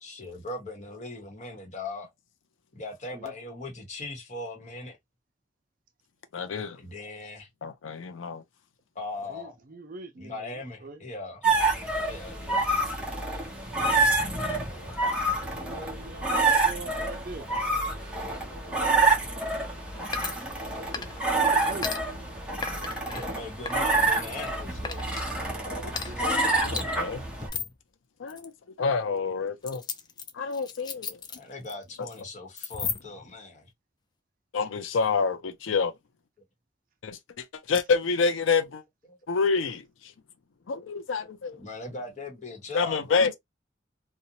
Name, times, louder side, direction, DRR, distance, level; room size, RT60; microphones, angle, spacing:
voice 1, 0.0-2.1 2.7-5.0 6.8-7.5 8.9-9.6 10.2-11.5 12.0-12.7 23.1-25.0 26.0-26.1 31.4-33.7 39.1-39.2 41.6-43.3, left 2 dB, 40° left, 1.0 m, -39 dB
voice 2, 6.3-6.8 7.6-8.4 25.8-25.9 26.6-27.2 28.2-28.5 28.8-29.8 30.3-31.2 34.5-35.9 37.0-38.8 39.3-40.1 40.7-41.6 42.7-43.3, left 5 dB, 80° left, 0.5 m, -28 dB
voice 3, 9.3-11.1 15.6-17.7 20.7-21.9 26.0-26.3, right 3 dB, 45° right, 0.5 m, -43 dB
sound 1, 11.4-27.5, right 3 dB, 5° right, 0.7 m, -27 dB
sound 2, 20.1-20.7 20.9-21.3 21.8-22.0 22.6-23.2 23.7-24.5 24.8-25.2 25.9-26.1 26.8-26.9 27.4-27.8 28.3-28.5 29.6-31.7 32.0-32.2 32.6-33.2, left 6 dB, 20° left, 0.3 m, -35 dB
2.6 x 2.1 x 2.8 m
head